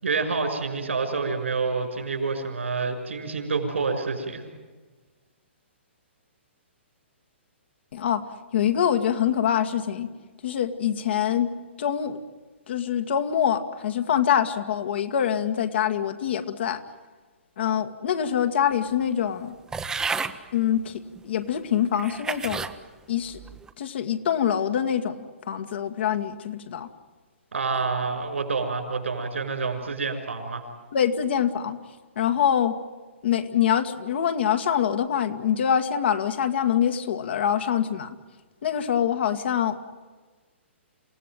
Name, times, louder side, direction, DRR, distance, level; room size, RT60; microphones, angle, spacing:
voice 1, 0.0-4.4 27.5-30.6, right 4 dB, 75° right, 7 dB, 6.0 m, -28 dB
voice 2, 7.9-8.2 8.5-10.1 10.4-11.5 11.8-12.2 12.7-16.8 17.6-19.5 20.5-22.7 23.1-23.4 23.8-26.9 30.9-31.8 32.2-32.8 33.2-38.2 38.6-39.8, left 9 dB, 60° left, 6 dB, 2.0 m, -25 dB
sound 1, 19.7-20.4 21.2-21.3 21.9-22.7 23.3-23.7, right 5 dB, 10° right, 1.0 m, -31 dB
28.0 x 17.0 x 9.2 m, 1.3 s
hypercardioid pair, 130°, 7 cm